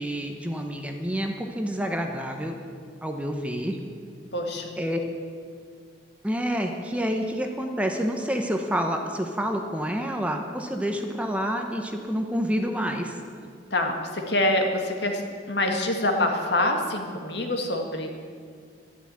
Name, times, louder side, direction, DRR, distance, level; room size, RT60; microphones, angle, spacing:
voice 1, 0.0-2.6 3.0-3.8 4.8-5.0 6.2-13.2, equal, 5° right, 3 dB, 1.0 m, -28 dB
voice 2, 4.3-4.8 13.7-18.1, left 1 dB, 60° left, 3 dB, 1.8 m, -26 dB
12.0 x 11.0 x 8.6 m, 2.1 s
head